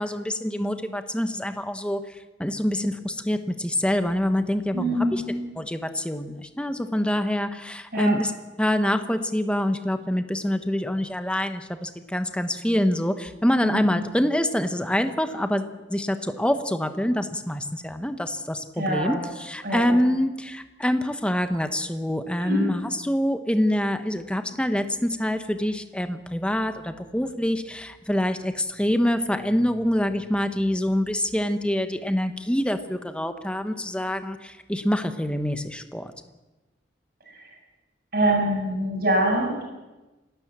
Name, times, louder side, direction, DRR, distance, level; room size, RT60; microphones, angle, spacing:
voice 1, 0.0-2.0 2.4-5.2 5.6-8.3 8.6-36.1, left 1 dB, 5° left, 8 dB, 1.1 m, -25 dB
voice 2, 4.7-5.4 7.9-8.1 13.6-14.0 18.8-19.2 19.6-20.0 22.4-22.7 37.3-37.5 38.1-39.6, right 1 dB, 55° right, 0 dB, 7.6 m, -25 dB
27.0 x 13.0 x 7.5 m, 1.1 s
head